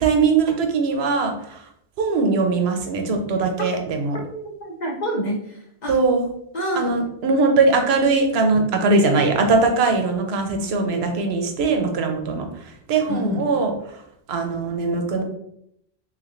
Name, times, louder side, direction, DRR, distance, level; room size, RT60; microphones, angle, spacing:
voice 1, 0.0-1.3 2.0-4.2 5.9-6.3 6.8-12.4 12.9-13.7 14.3-15.2, right 3 dB, 75° right, 4 dB, 0.8 m, -20 dB
voice 2, 4.3-5.9 6.5-7.0 13.1-13.5, equal, 50° left, -1 dB, 0.6 m, -28 dB
3.2 x 3.1 x 2.4 m, 0.74 s
omnidirectional pair, 1.1 m